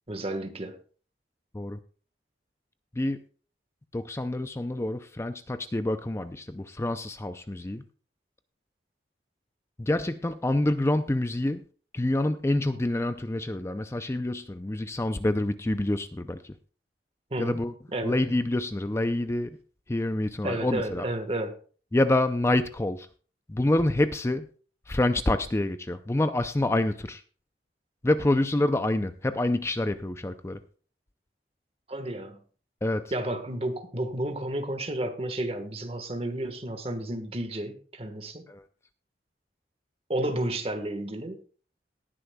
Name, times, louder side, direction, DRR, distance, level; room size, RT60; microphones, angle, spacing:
voice 1, 0.1-0.8 17.3-17.6 17.9-18.2 20.4-21.6 31.9-32.4 33.1-38.5 40.1-41.4, right 1 dB, 35° right, 1.4 m, -31 dB
voice 2, 3.9-7.8 9.8-11.6 11.9-16.5 17.4-17.7 18.0-19.6 19.9-21.1 21.9-23.1 23.5-24.5 24.9-27.2 28.0-30.6 32.8-33.1 38.5-38.6, left 1 dB, 15° left, 0.4 m, -27 dB
18.5 x 9.9 x 2.3 m
head